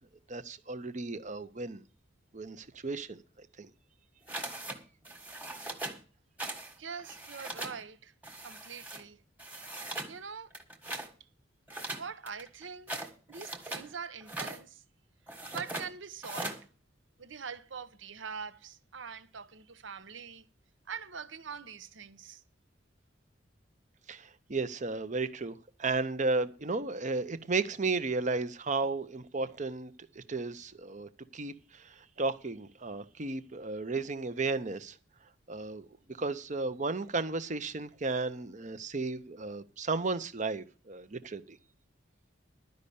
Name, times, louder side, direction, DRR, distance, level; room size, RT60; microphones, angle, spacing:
voice 1, 0.3-1.8 2.3-3.7 24.1-35.0 35.5-35.9 36.2-41.6, right 3 dB, 40° right, 0.8 m, -34 dB
sound 1, 4.3-4.8 5.0-6.0 6.4-6.7 7.0-7.8 8.2-9.0 9.4-10.1 10.5-11.1 11.7-13.9 14.2-14.6 15.3-15.9 16.2-16.6, right 2 dB, 10° right, 1.5 m, -40 dB
voice 2, 6.8-8.1 8.4-9.2 9.6-9.7 10.1-10.5 12.0-12.9 13.3-14.8 15.4-16.5 17.2-20.5 20.9-22.4, right 6 dB, 75° right, 0.9 m, -43 dB
11.5 x 5.4 x 8.5 m
head